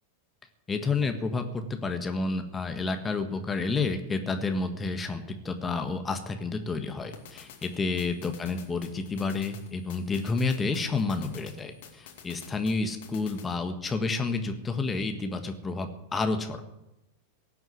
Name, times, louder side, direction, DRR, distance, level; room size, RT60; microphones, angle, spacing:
voice 1, 0.7-16.6, left 3 dB, 15° left, 6 dB, 1.6 m, -30 dB
sound 1, 7.1-13.6, left 8 dB, 55° left, 2.6 m, -50 dB
17.0 x 7.9 x 9.5 m, 0.92 s
figure-of-eight pair, 90°, 0 cm